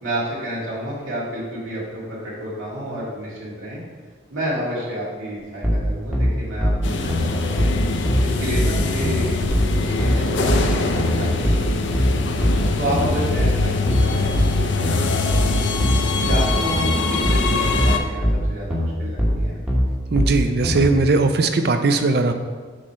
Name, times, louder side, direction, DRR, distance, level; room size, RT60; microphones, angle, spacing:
voice 1, 0.0-3.8 4.3-6.7 7.0-7.7 8.2-12.2 12.8-15.6 16.2-19.5, right 1 dB, 85° right, -7 dB, 2.0 m, -30 dB
sound 1, 5.6-20.9, equal, 5° right, 1.0 m, -21 dB
sound 2, 6.8-18.0, left 3 dB, 70° left, 0.5 m, -23 dB
voice 2, 20.1-22.3, right 3 dB, 50° right, 7 dB, 0.5 m, -19 dB
7.6 x 3.1 x 5.5 m, 1.4 s
head